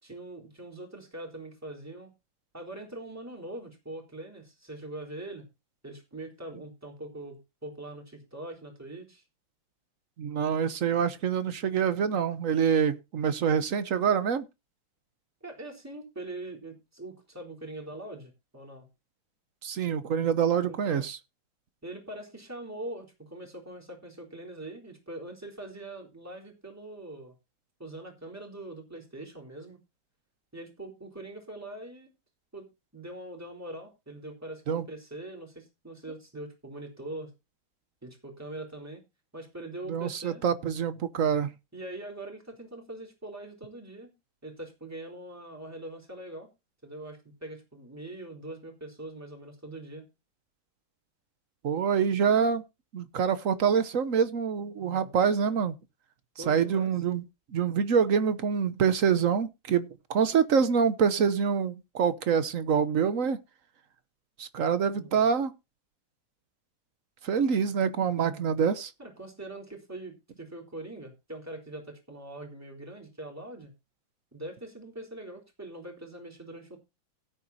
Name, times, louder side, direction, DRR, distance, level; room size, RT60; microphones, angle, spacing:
voice 1, 0.0-2.1 2.5-5.5 5.8-9.2 15.4-18.9 20.7-21.1 21.8-27.4 27.8-29.8 30.5-32.1 32.5-32.7 32.9-37.3 38.0-39.0 39.3-40.4 41.7-44.1 44.4-46.5 46.8-50.0 54.8-55.2 56.4-56.9 64.9-65.2 68.2-68.6 69.0-73.7 74.3-76.8, right 1 dB, 5° right, 3.8 m, -42 dB
voice 2, 10.2-14.5 19.6-21.2 34.7-34.8 39.9-41.5 51.6-52.6 52.9-55.7 56.5-57.2 57.5-63.4 64.4-65.5 67.2-68.9, right 7 dB, 50° right, 1.1 m, -26 dB
17.0 x 9.2 x 2.7 m
omnidirectional pair, 2.2 m